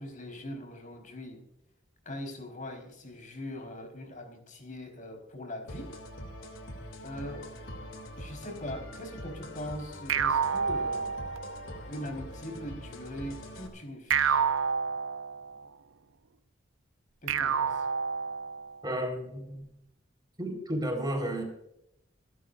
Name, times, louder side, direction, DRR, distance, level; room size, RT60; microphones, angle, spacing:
voice 1, 0.0-1.4 2.0-5.9 7.0-7.4 8.1-11.2 11.9-14.4 17.2-17.9, left 1 dB, 45° left, 3 dB, 4.3 m, -41 dB
sound 1, 5.7-13.7, equal, 85° left, 2.8 m, -43 dB
sound 2, 10.1-11.7 14.1-15.7 17.3-18.8, right 6 dB, 85° right, 0.6 m, -29 dB
voice 2, 18.8-19.7 20.4-21.4, right 1 dB, 20° right, 3 dB, 4.3 m, -32 dB
27.5 x 12.5 x 2.6 m, 0.80 s
head